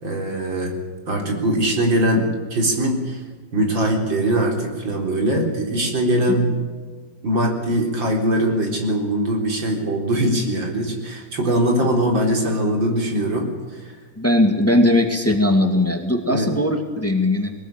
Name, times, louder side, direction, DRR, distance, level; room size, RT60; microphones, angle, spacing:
voice 1, 0.0-0.7 1.1-3.2 3.5-6.5 7.2-13.9 16.3-16.5, right 1 dB, 80° right, 1 dB, 4.7 m, -21 dB
voice 2, 14.2-17.5, left 1 dB, 5° left, 4 dB, 2.1 m, -19 dB
22.0 x 19.5 x 9.0 m, 1.4 s
omnidirectional pair, 2.0 m